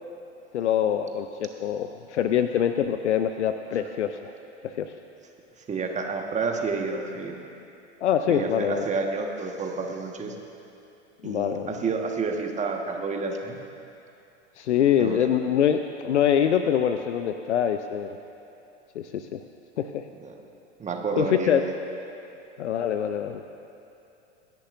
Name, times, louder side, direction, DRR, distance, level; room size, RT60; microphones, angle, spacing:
voice 1, 0.5-4.3 4.6-4.9 8.0-8.9 11.2-11.8 14.6-18.2 19.0-19.4 19.8-20.1 21.2-21.6 22.6-23.4, left 9 dB, 80° left, 8 dB, 0.6 m, -24 dB
voice 2, 5.7-7.4 8.3-10.3 11.2-13.6 15.0-15.2 20.2-20.3 20.8-21.7, right 4 dB, 20° right, 2 dB, 1.5 m, -29 dB
25.5 x 10.5 x 2.6 m, 2.8 s
hypercardioid pair, 90°, 35 cm